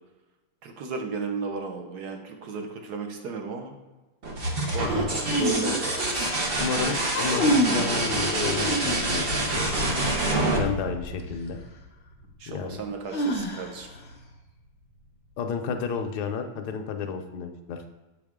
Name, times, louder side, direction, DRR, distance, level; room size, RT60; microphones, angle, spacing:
voice 1, 0.6-3.7 4.7-5.1 5.4-5.8 6.7-7.0 9.8-10.5 12.4-13.9, right 5 dB, 60° right, 4 dB, 1.3 m, -34 dB
sound 1, 4.2-11.8 13.6-14.2, right 1 dB, 45° right, 0.8 m, -27 dB
voice 2, 4.8-5.1 6.6-9.6 10.5-11.6 12.5-12.8 15.4-17.9, left 5 dB, 65° left, 5 dB, 1.1 m, -32 dB
sound 2, 5.2-6.4 7.0-7.9 8.3-9.2 11.2-11.3 13.1-14.0, equal, 50° left, 0.6 m, -27 dB
7.5 x 4.8 x 3.6 m, 1.1 s
omnidirectional pair, 2.2 m